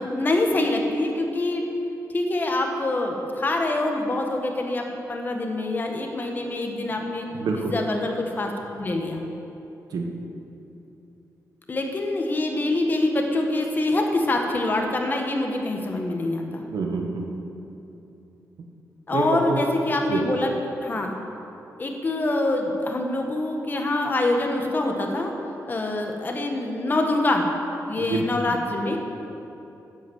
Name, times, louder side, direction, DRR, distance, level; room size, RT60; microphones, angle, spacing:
voice 1, 0.0-1.6 2.1-7.3 7.5-9.2 11.7-16.6 19.1-20.5 20.8-21.1 21.8-25.3 25.7-27.5 27.9-29.0, left 2 dB, 30° left, 2 dB, 1.4 m, -25 dB
voice 2, 7.4-7.7 9.9-10.1 16.7-17.3 19.1-19.6 20.1-20.2 28.0-28.6, right 3 dB, 80° right, 2 dB, 1.5 m, -26 dB
10.0 x 9.0 x 8.0 m, 2.9 s
wide cardioid pair, 140°, 6 cm